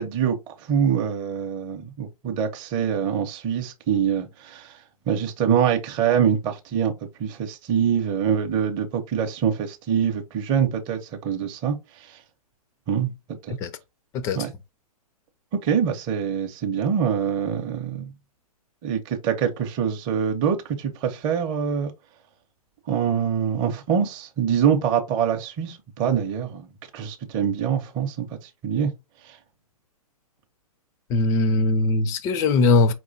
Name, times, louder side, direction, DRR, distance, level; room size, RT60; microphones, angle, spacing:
voice 1, 0.0-4.8 5.1-6.9 7.2-12.2 12.9-13.1 13.5-13.6 14.4-14.5 15.6-18.1 18.8-21.9 22.9-26.7 26.9-28.9 29.2-29.4, right 8 dB, 25° right, 0.6 m, -24 dB
voice 2, 31.1-32.9, left 3 dB, 15° left, 0.4 m, -20 dB
4.8 x 3.0 x 2.6 m
figure-of-eight pair, 115°, 20 cm